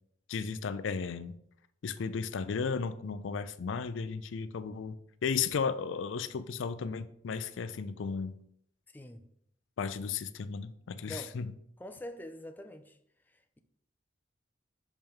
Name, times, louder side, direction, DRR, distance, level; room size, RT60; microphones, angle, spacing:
voice 1, 0.3-1.4 1.8-4.9 5.2-8.3 9.8-11.5, left 5 dB, 75° left, 0.4 m, -34 dB
voice 2, 8.9-9.2 11.0-11.4 11.8-13.0 13.3-13.6, equal, 10° left, 0.4 m, -45 dB
5.9 x 5.4 x 3.5 m
head